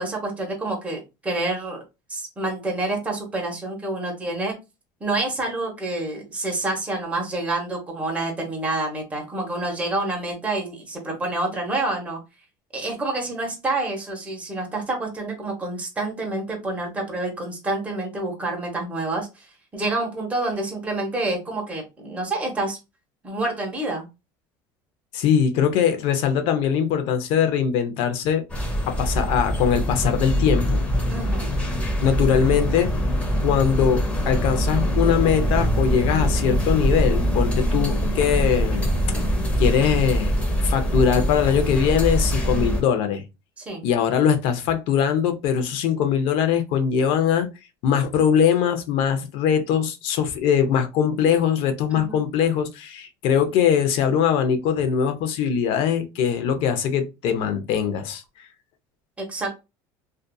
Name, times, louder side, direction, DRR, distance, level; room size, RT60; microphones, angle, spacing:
voice 1, 0.0-1.8 2.1-4.5 5.0-12.2 12.7-19.5 19.7-22.8 23.2-24.1 31.1-31.5 42.5-42.8 43.6-43.8 51.9-52.2 59.2-59.5, right 2 dB, 15° right, 1.0 m, -28 dB
voice 2, 25.1-28.4 28.9-30.8 32.0-32.9 33.4-39.2 39.6-40.3 40.6-43.2 43.8-47.5 47.8-58.2, left 8 dB, 60° left, 0.6 m, -21 dB
sound 1, 28.5-42.8, equal, 15° left, 0.7 m, -23 dB
2.6 x 2.4 x 2.2 m
cardioid pair, 140°, 10 cm